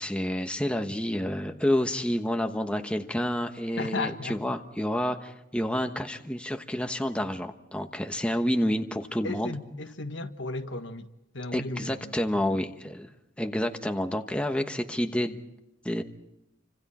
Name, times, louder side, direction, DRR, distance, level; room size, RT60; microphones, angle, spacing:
voice 1, 0.0-9.5 11.5-13.1 13.4-15.4 15.8-16.0, left 1 dB, 5° left, 1.1 m, -29 dB
voice 2, 3.8-4.4 9.2-11.1 11.3-12.2, left 3 dB, 70° left, 1.6 m, -34 dB
30.0 x 25.5 x 4.3 m
head